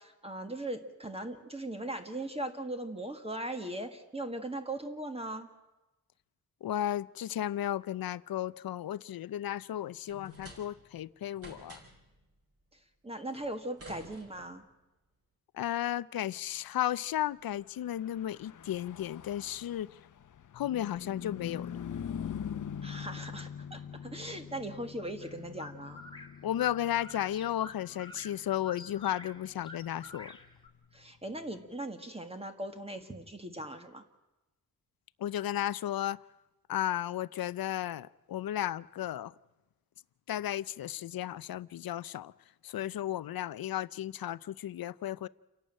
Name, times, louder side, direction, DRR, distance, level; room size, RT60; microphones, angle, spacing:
voice 1, 0.0-5.5 13.0-14.6 22.8-26.0 30.9-34.0, right 1 dB, 15° right, 1.7 m, -39 dB
voice 2, 6.6-11.8 15.5-19.9 20.5-21.8 26.4-30.3 35.2-36.2 36.7-39.3 40.3-42.3 42.6-45.3, left 12 dB, 80° left, 0.6 m, -34 dB
sound 1, 10.1-11.0 11.4-12.1 13.3-14.7, right 1 dB, 40° right, 5.9 m, -51 dB
Car passing by / Truck, 17.8-31.5, left 8 dB, 55° left, 0.9 m, -44 dB
sound 2, 25.2-30.7, left 2 dB, 15° left, 2.1 m, -50 dB
29.0 x 12.0 x 8.9 m
wide cardioid pair, 140°, 35 cm